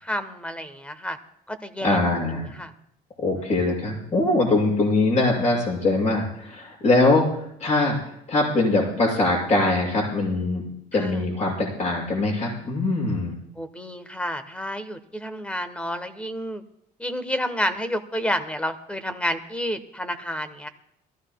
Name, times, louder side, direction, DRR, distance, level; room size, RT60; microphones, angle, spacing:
voice 1, 0.0-1.2 1.5-2.0 2.6-2.7 3.4-3.5 10.9-11.2 13.6-16.6 17.0-20.7, equal, 5° left, 10 dB, 1.2 m, -30 dB
voice 2, 1.8-2.5 3.2-10.6 10.9-13.3, left 2 dB, 45° left, -2 dB, 6.7 m, -22 dB
22.0 x 14.5 x 2.3 m, 0.75 s
cardioid pair, 110°, 17 cm